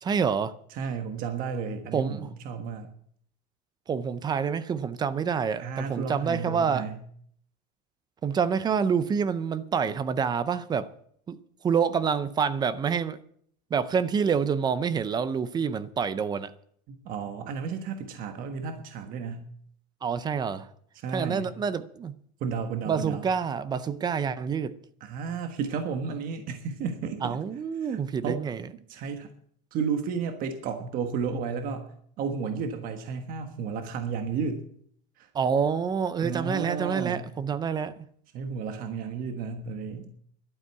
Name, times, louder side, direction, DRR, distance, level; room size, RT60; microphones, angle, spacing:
voice 1, 0.0-0.5 1.9-2.3 3.9-6.9 8.2-10.9 11.3-11.4 11.6-13.2 13.7-16.5 20.0-20.7 21.1-22.2 22.9-24.7 27.2-28.7 35.3-37.9, right 6 dB, 20° right, 0.5 m, -27 dB
voice 2, 0.7-2.9 5.6-7.0 16.9-19.5 20.9-21.5 22.4-23.2 25.0-27.4 27.8-28.0 28.2-28.4 28.9-29.3 29.7-31.8 32.2-34.6 35.2-35.3 36.2-37.3 38.3-40.1, right 6 dB, 40° right, 1.4 m, -32 dB
12.0 x 9.2 x 8.2 m
cardioid pair, 160°, 21 cm